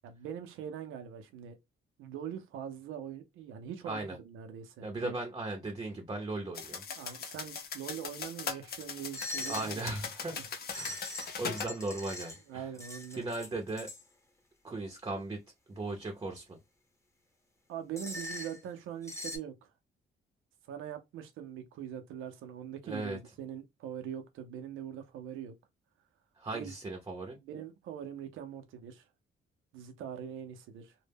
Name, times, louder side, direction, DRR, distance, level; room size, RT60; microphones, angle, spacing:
voice 1, 0.0-1.6 2.0-5.2 7.0-9.8 10.3-10.4 10.8-11.0 12.5-13.3 17.7-19.7 20.7-25.5 26.5-26.7 27.5-29.0 29.7-31.0, right 9 dB, 85° right, 0.5 m, -42 dB
voice 2, 3.9-4.2 4.8-6.8 9.4-10.4 10.7-12.7 13.1-13.9 14.6-15.4 15.7-16.6 22.8-23.2 26.4-27.4, right 2 dB, 20° right, 0.6 m, -37 dB
sound 1, 6.5-11.7, left 6 dB, 50° left, 0.6 m, -40 dB
sound 2, 9.1-9.7 10.7-12.4 12.7-14.0 18.0-18.6 19.0-19.4, left 1 dB, 15° left, 0.8 m, -41 dB
2.1 x 2.0 x 3.3 m
cardioid pair, 90°, 20 cm